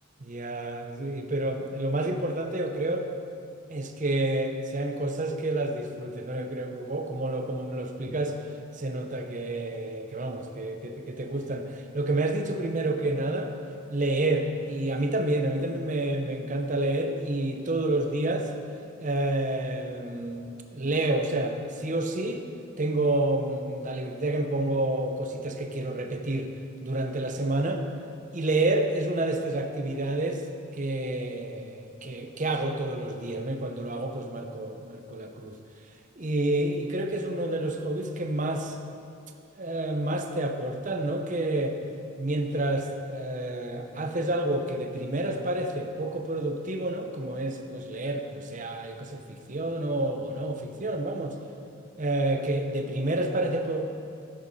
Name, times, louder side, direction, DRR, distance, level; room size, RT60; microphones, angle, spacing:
voice 1, 0.2-3.1 3.7-8.4 8.7-13.5 13.9-18.5 19.0-22.5 22.8-26.5 26.8-27.8 28.3-30.4 30.7-35.6 36.2-38.8 39.6-41.8 42.2-51.4 52.0-53.8, right 2 dB, 35° right, 5 dB, 0.8 m, -29 dB
12.5 x 10.0 x 4.2 m, 2.5 s
head